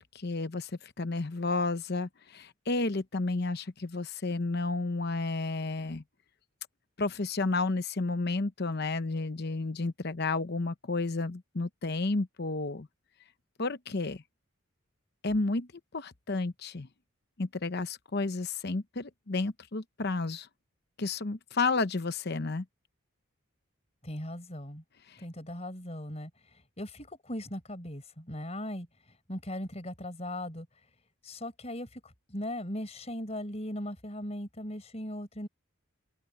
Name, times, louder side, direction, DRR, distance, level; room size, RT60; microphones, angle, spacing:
voice 1, 0.1-6.0 7.0-12.9 13.6-14.2 15.2-15.7 15.9-16.9 17.4-20.5 21.0-22.6, left 3 dB, 50° left, 0.9 m, -31 dB
voice 2, 24.0-24.8 25.2-26.3 26.8-28.9 29.3-30.7 31.2-35.5, left 1 dB, 30° left, 4.5 m, -38 dB
open air
head